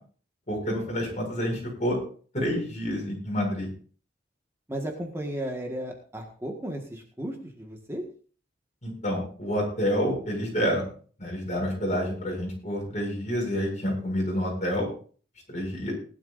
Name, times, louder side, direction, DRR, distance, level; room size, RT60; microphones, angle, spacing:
voice 1, 0.5-2.0 2.3-3.7 8.8-10.8 11.2-14.9 15.5-15.9, equal, 40° left, 0 dB, 7.3 m, -28 dB
voice 2, 4.7-8.1, right 1 dB, 15° right, 1 dB, 1.7 m, -34 dB
19.5 x 12.0 x 2.6 m, 0.41 s
head